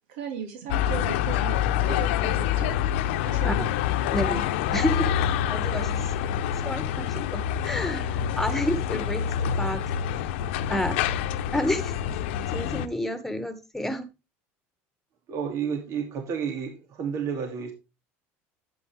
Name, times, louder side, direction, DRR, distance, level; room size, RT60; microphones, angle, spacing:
voice 1, 0.1-1.6 1.9-2.7 3.2-3.7 4.3-4.5, right 7 dB, 85° right, 4 dB, 2.4 m, -36 dB
sound 1, 0.7-12.9, left 9 dB, 85° left, 0.9 m, -26 dB
voice 2, 4.7-5.1 5.5-6.3 6.6-9.8 10.7-10.9 11.5-11.9 12.5-14.0, left 1 dB, 5° left, 10 dB, 2.0 m, -30 dB
voice 3, 15.3-17.7, right 7 dB, 55° right, 4 dB, 2.7 m, -31 dB
10.5 x 8.8 x 3.5 m, 0.27 s
supercardioid pair, 100°, 6 cm